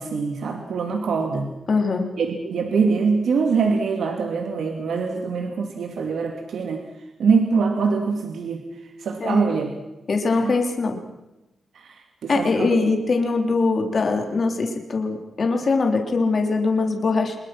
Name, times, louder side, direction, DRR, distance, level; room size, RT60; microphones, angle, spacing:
voice 1, 0.0-1.5 2.2-6.8 7.2-8.7 9.0-9.7 10.4-10.5 11.7-13.0, right 5 dB, 85° right, 4 dB, 2.7 m, -23 dB
voice 2, 1.7-2.1 9.2-9.6 10.1-11.0 12.3-17.4, left 3 dB, 45° left, 4 dB, 3.6 m, -22 dB
26.0 x 22.0 x 6.1 m, 0.97 s
wide cardioid pair, 145°, 0 cm